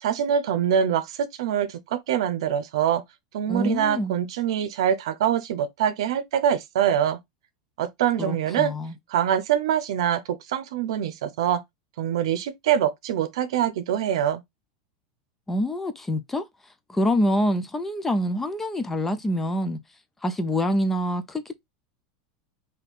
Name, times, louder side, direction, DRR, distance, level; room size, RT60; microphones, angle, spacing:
voice 1, 0.0-3.0 3.3-7.2 7.8-8.7 9.1-11.6 12.0-14.4, right 9 dB, 75° right, 0.7 m, -24 dB
voice 2, 3.5-4.1 8.2-8.9 15.5-16.4 16.9-19.8 20.2-21.5, equal, 10° left, 0.3 m, -26 dB
3.5 x 2.7 x 4.0 m
supercardioid pair, 165°, 3 cm